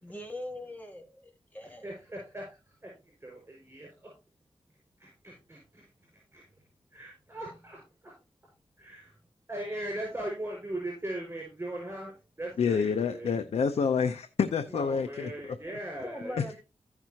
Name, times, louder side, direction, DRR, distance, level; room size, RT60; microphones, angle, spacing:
voice 1, 0.0-1.9 16.0-16.5, left 1 dB, 15° left, 1 dB, 2.7 m, -41 dB
voice 2, 1.6-2.9 3.2-4.1 5.0-5.9 6.3-6.4 6.9-8.1 8.8-9.1 9.5-13.4 14.7-16.6, right 1 dB, 20° right, 0 dB, 5.7 m, -39 dB
voice 3, 12.6-15.3 16.4-16.5, left 6 dB, 85° left, 9 dB, 0.6 m, -28 dB
15.0 x 6.0 x 2.9 m, 0.29 s
cardioid pair, 60°, 10 cm